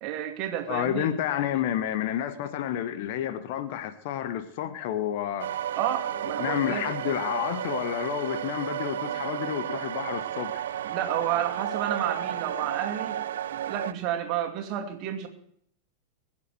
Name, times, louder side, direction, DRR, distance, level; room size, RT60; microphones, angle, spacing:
voice 1, 0.0-1.1 5.8-6.9 10.8-13.2 13.7-15.3, right 10 dB, 40° right, 4 dB, 2.6 m, -31 dB
voice 2, 0.7-5.5 6.4-10.6, left 11 dB, 50° left, 11 dB, 1.3 m, -30 dB
sound 1, 5.4-13.9, right 10 dB, 60° right, 0.5 m, -32 dB
22.5 x 7.5 x 7.9 m, 0.68 s
figure-of-eight pair, 90°, 0 cm